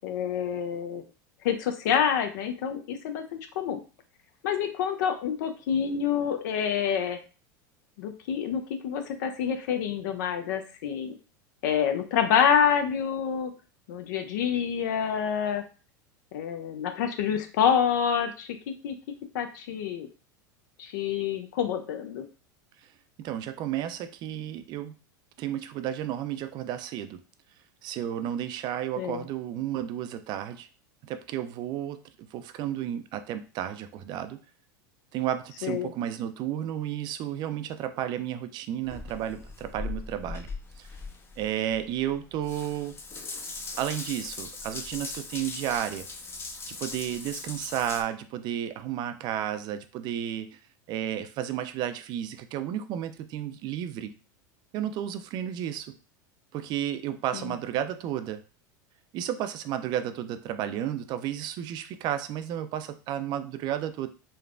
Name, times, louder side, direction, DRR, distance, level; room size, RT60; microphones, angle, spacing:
voice 1, 0.0-1.0 1.4-3.8 4.4-7.2 8.0-11.1 11.6-13.5 13.9-15.6 16.3-18.5 18.8-18.9 19.3-20.1 20.8-22.2 29.0-29.2 35.6-35.9 57.3-57.5, left 8 dB, 70° left, 7 dB, 0.5 m, -27 dB
voice 2, 23.2-24.9 25.4-27.2 27.8-30.7 31.0-32.0 32.3-34.4 35.1-40.5 40.8-40.9 41.4-43.0 43.8-46.1 46.7-50.6 50.9-54.1 54.7-55.9 56.5-58.4 59.1-64.1, right 11 dB, 45° right, 10 dB, 0.4 m, -32 dB
Water tap faucet / Bathtub (filling or washing) / Drip, 38.8-48.0, left 3 dB, 25° left, 0.5 m, -40 dB
3.2 x 2.1 x 2.4 m, 0.35 s
hypercardioid pair, 105°, 10 cm